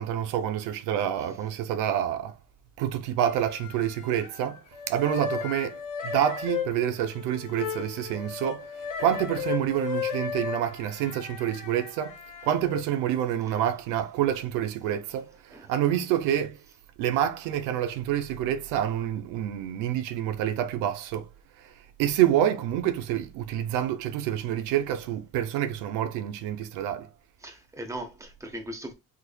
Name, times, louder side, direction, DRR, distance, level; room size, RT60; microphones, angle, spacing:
voice 1, 0.0-2.4 2.8-4.6 4.9-12.2 12.4-16.6 17.0-21.3 21.6-27.1, right 11 dB, 85° right, 0.6 m, -27 dB
sound 1, 3.3-4.4 4.7-12.8, left 7 dB, 75° left, 1.0 m, -35 dB
voice 2, 27.4-28.9, right 1 dB, 10° right, 1.0 m, -38 dB
3.6 x 3.0 x 2.2 m
cardioid pair, 90°, 31 cm